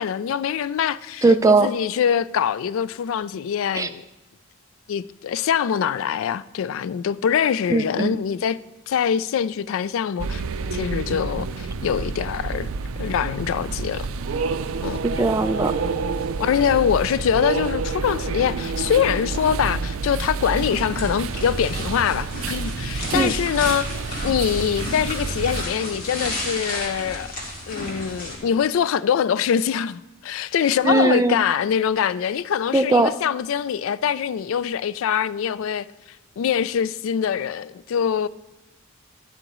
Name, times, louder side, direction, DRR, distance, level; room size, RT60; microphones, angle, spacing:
voice 1, 0.0-4.0 4.9-8.6 8.9-10.4 10.7-12.7 13.0-14.1 14.8-15.0 16.4-23.9 24.2-27.3 27.7-35.9 36.4-38.3, left 8 dB, 75° left, 0.3 m, -24 dB
voice 2, 1.2-1.7 3.7-3.9 7.7-8.1 15.0-15.7 23.1-23.3 30.8-31.4 32.7-33.1, right 3 dB, 15° right, 0.3 m, -19 dB
sound 1, 10.2-25.7, right 4 dB, 80° right, 0.5 m, -28 dB
sound 2, 20.5-28.4, left 1 dB, 45° left, 2.2 m, -33 dB
11.5 x 11.5 x 3.1 m
head